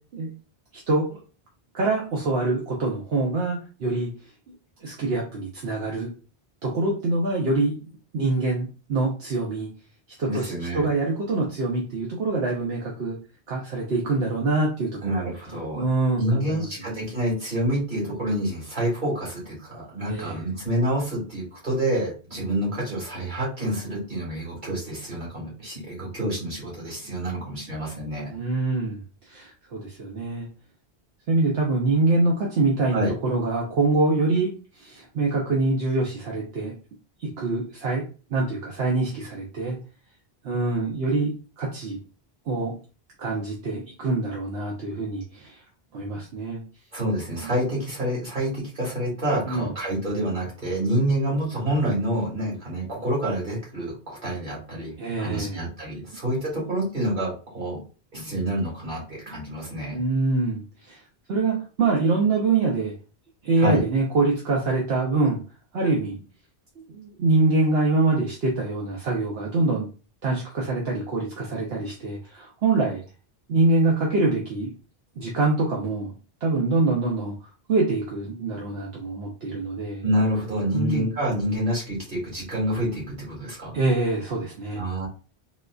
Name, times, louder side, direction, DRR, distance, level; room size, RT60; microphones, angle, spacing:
voice 1, 0.7-1.2 1.7-4.1 4.8-6.1 6.6-9.7 10.2-13.2 13.5-17.1 20.1-20.5 28.3-30.5 31.3-36.7 37.2-38.0 38.3-39.8 40.4-42.0 42.5-42.7 43.2-45.6 45.9-46.6 47.4-47.5 49.5-49.7 55.0-55.7 59.9-61.0 61.3-62.9 63.4-65.4 65.7-66.2 66.8-69.9 70.2-73.0 73.5-74.7 75.2-76.1 76.4-77.3 77.7-80.0 80.7-81.1 83.7-84.8, right 3 dB, 75° right, -2 dB, 1.0 m, -25 dB
voice 2, 10.3-10.9 15.0-15.9 16.2-28.4 32.9-33.1 46.9-54.9 55.2-57.8 58.1-60.0 63.6-63.8 80.0-83.8 84.7-85.1, right 1 dB, 45° right, -5 dB, 2.0 m, -27 dB
4.0 x 2.5 x 2.3 m, 0.35 s
omnidirectional pair, 1.1 m